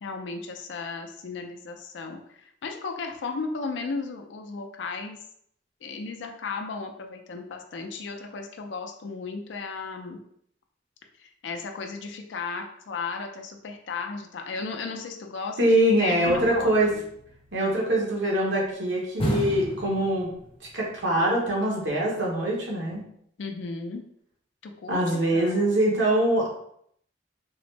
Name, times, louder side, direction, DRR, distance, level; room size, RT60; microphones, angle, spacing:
voice 1, 0.0-5.2 5.8-10.2 11.2-17.0 23.4-24.0 24.6-25.0 25.3-25.7, left 4 dB, 75° left, 4 dB, 0.4 m, -35 dB
voice 2, 15.6-16.9 17.5-20.3 20.7-23.0 24.9-26.5, right 1 dB, 80° right, -2 dB, 1.1 m, -23 dB
sound 1, 16.2-17.9 19.2-20.7 21.0-21.1, equal, 30° left, 0.6 m, -33 dB
3.8 x 2.0 x 3.2 m, 0.69 s
head